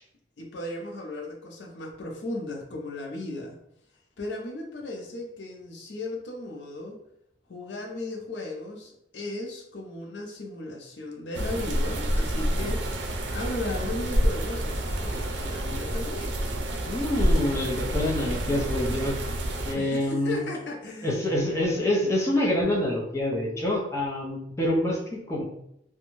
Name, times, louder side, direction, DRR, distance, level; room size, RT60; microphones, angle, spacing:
voice 1, 0.4-3.6 4.2-7.0 7.5-13.0 13.3-16.3 19.7-21.2, left 2 dB, 75° left, 2 dB, 0.6 m, -36 dB
sound 1, 11.3-19.7, right 1 dB, 85° right, 0.5 m, -28 dB
voice 2, 12.4-12.7 16.8-19.2 19.7-20.4 21.0-25.4, left 1 dB, 15° left, -3 dB, 0.6 m, -26 dB
2.5 x 2.2 x 3.0 m, 0.76 s
head